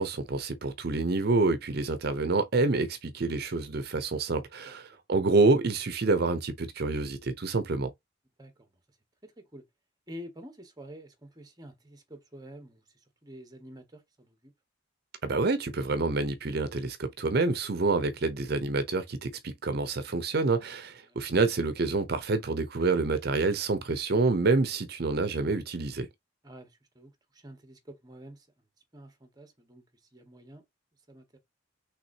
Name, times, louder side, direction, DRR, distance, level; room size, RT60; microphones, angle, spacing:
voice 1, 0.0-7.9 15.2-26.1, right 3 dB, 55° right, 0.6 m, -27 dB
voice 2, 4.7-5.0 8.4-8.8 9.2-9.6 10.1-14.5 20.6-21.2 26.4-28.5 28.9-30.6 31.1-31.4, equal, 20° right, 1.2 m, -49 dB
5.8 x 3.4 x 2.7 m
head